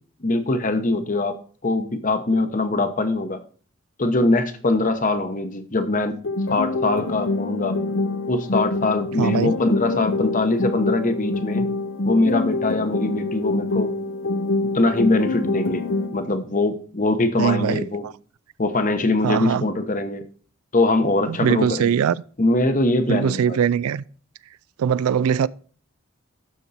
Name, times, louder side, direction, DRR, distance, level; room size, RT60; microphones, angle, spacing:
voice 1, 0.2-1.3 1.6-3.4 4.0-6.1 6.5-7.8 8.3-11.6 12.0-13.9 14.7-15.8 16.1-18.1 18.6-20.2 20.7-21.9 22.4-23.6, left 2 dB, 35° left, 0.9 m, -22 dB
sound 1, 6.2-16.2, left 2 dB, 60° left, 0.7 m, -25 dB
voice 2, 9.2-9.5 17.4-18.1 19.2-19.6 21.3-22.2 23.1-24.0 24.8-25.5, right 8 dB, 90° right, 0.3 m, -21 dB
12.0 x 4.5 x 4.1 m
head